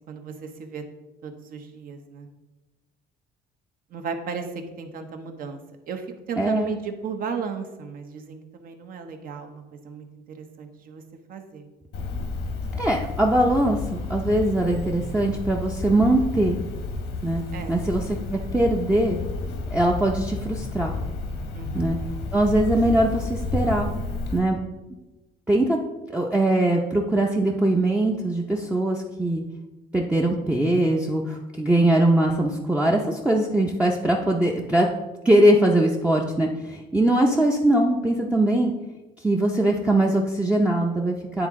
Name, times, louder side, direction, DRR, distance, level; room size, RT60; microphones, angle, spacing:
voice 1, 0.1-0.8 1.2-2.3 3.9-4.5 4.8-5.6 5.9-11.0 11.3-11.7 17.5-17.8 21.5-22.0, right 6 dB, 60° right, 6 dB, 0.9 m, -35 dB
voice 2, 6.4-6.7 12.7-16.6 17.2-17.4 17.7-19.2 19.7-20.9 21.7-22.0 22.3-23.9 24.3-24.6 25.5-25.8 26.1-29.4 29.9-34.9 35.2-38.7 39.2-41.5, right 1 dB, 10° right, -1 dB, 0.6 m, -21 dB
Cricket, 11.9-24.4, left 3 dB, 90° left, 1.2 m, -31 dB
9.6 x 3.7 x 3.6 m, 1.1 s
cardioid pair, 110°, 17 cm